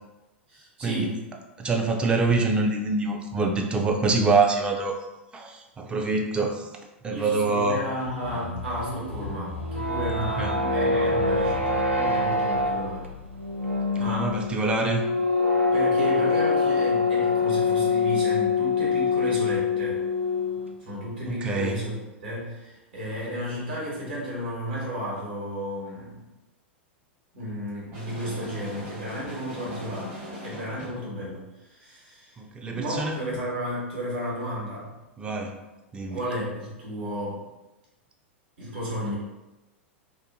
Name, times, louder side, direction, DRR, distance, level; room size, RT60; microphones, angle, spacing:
voice 1, 0.5-1.2 7.1-13.1 13.9-14.4 15.7-20.0 20.8-26.2 27.3-32.3 32.7-34.9 36.1-37.4 38.6-39.1, equal, 60° right, -6 dB, 1.1 m, -33 dB
voice 2, 1.6-5.0 5.3-6.7 7.0-7.8 10.4-10.5 14.0-15.0 21.3-21.8 32.4-33.2 35.2-35.6 35.9-36.2, right 3 dB, 15° right, 2 dB, 0.3 m, -25 dB
sound 1, 7.9-14.5, left 3 dB, 85° left, 0.5 m, -37 dB
sound 2, 9.5-20.7, left 4 dB, 90° right, 0.3 m, -24 dB
sound 3, 27.9-31.1, equal, 30° right, 0.9 m, -40 dB
2.5 x 2.2 x 2.7 m, 1.0 s
figure-of-eight pair, 95°, 7 cm